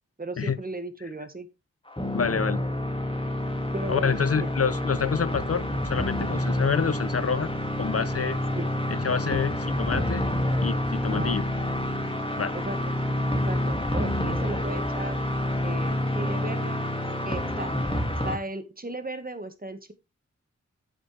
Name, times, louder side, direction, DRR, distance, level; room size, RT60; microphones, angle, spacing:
voice 1, 0.2-1.5 3.7-4.5 8.6-8.7 11.1-11.4 12.5-12.8 13.3-15.2 15.6-16.8 17.2-19.9, right 2 dB, 30° right, 1.6 m, -36 dB
sound 1, 1.9-18.4, left 1 dB, 20° left, 2.1 m, -28 dB
voice 2, 2.1-2.6 3.9-7.5 7.8-8.4 8.9-10.2 10.6-11.4 12.4-12.6, left 6 dB, 55° left, 0.6 m, -27 dB
9.0 x 7.3 x 3.3 m
cardioid pair, 45°, 29 cm